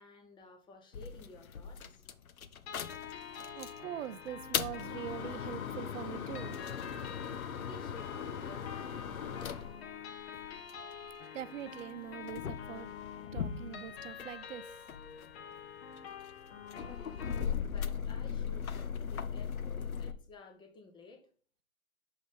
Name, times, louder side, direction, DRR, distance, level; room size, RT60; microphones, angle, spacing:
voice 1, 0.0-2.0 7.6-9.8 17.1-21.3, left 3 dB, 10° left, 0.6 m, -54 dB
sound 1, 0.9-3.8 4.3-11.0 11.8-14.4 14.7-20.1, left 7 dB, 85° left, 0.7 m, -39 dB
sound 2, 2.7-17.4, left 7 dB, 50° left, 1.1 m, -47 dB
voice 2, 3.5-6.6 11.3-12.9 13.3-14.7, right 10 dB, 65° right, 0.5 m, -43 dB
6.2 x 3.5 x 5.2 m
hypercardioid pair, 120°, 41 cm